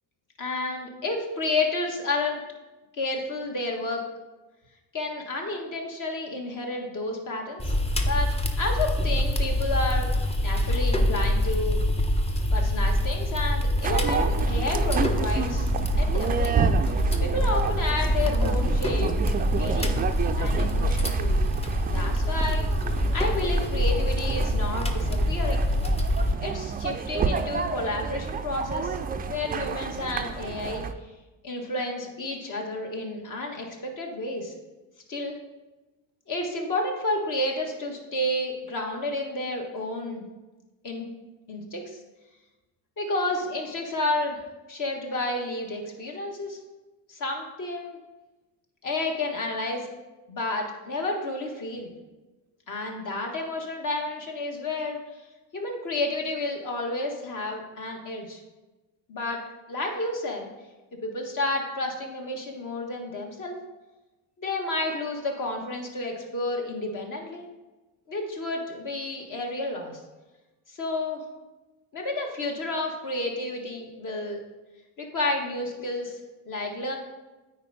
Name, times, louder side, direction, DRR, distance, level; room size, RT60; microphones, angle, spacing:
voice 1, 0.4-2.4 2.9-4.0 4.9-7.7 8.0-8.3 8.6-11.8 12.5-15.7 16.0-16.5 17.2-19.1 19.5-20.0 20.4-21.4 21.9-22.7 23.1-25.6 26.4-29.0 29.3-30.8 31.4-34.5 35.1-35.4 36.3-40.2 40.8-41.1 41.5-42.0 43.0-44.4 44.7-46.6 47.1-48.0 48.8-49.9 50.3-51.9 52.7-55.0 55.5-58.4 59.1-59.4 59.7-60.5 61.0-63.6 64.4-67.5 68.1-70.0 70.7-71.2 71.9-74.4 75.0-76.2 76.5-77.0, left 2 dB, 50° left, 2 dB, 1.6 m, -31 dB
sound 1, 7.6-26.3, left 1 dB, 15° left, 0.7 m, -25 dB
sound 2, 13.8-30.9, right 6 dB, 25° right, 0.3 m, -30 dB
8.8 x 4.6 x 4.1 m, 1.1 s
cardioid pair, 105°, 41 cm